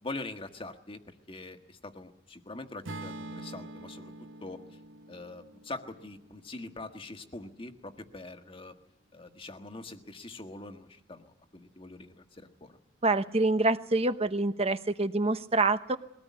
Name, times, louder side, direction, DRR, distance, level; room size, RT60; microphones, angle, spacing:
voice 1, 0.0-1.0 1.3-4.1 4.4-4.6 5.1-8.7 9.1-12.8, left 2 dB, 25° left, 6 dB, 1.5 m, -43 dB
Acoustic guitar / Strum, 2.8-7.1, right 2 dB, 65° right, 1.3 m, -45 dB
voice 2, 13.0-16.0, right 2 dB, 30° right, 10 dB, 1.0 m, -26 dB
22.0 x 18.0 x 9.5 m, 0.84 s
head